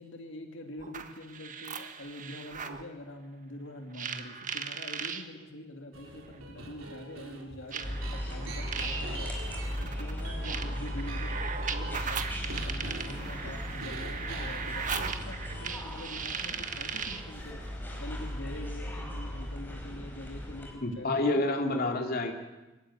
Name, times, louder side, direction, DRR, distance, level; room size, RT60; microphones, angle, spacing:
voice 1, 0.0-9.3 10.0-21.4, left 1 dB, 65° left, 3 dB, 2.6 m, -45 dB
sound 1, 0.8-2.8 3.9-5.2 6.3-6.4 7.7-17.3, right 6 dB, 40° right, 1.6 m, -38 dB
sound 2, 5.9-16.0 16.4-16.5 17.3-17.7 17.9-18.4, right 2 dB, 80° right, 3.9 m, -44 dB
sound 3, 7.8-20.7, equal, 10° left, 4.8 m, -37 dB
voice 2, 20.8-22.3, left 2 dB, 50° left, 2 dB, 2.8 m, -28 dB
25.5 x 15.5 x 9.9 m, 1.1 s
head